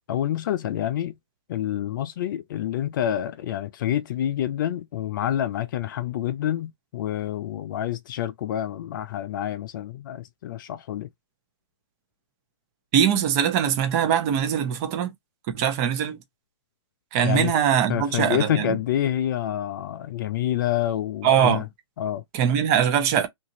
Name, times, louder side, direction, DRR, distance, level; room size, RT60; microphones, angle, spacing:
voice 1, 0.1-1.1 1.5-11.1 17.2-17.5 17.9-21.6 22.0-22.2, left 11 dB, 45° left, 0.4 m, -27 dB
voice 2, 12.9-15.1 15.5-16.2 17.1-18.8 21.2-21.6 22.3-23.3, right 9 dB, 30° right, 0.7 m, -22 dB
2.9 x 2.5 x 2.6 m
hypercardioid pair, 130°, 15 cm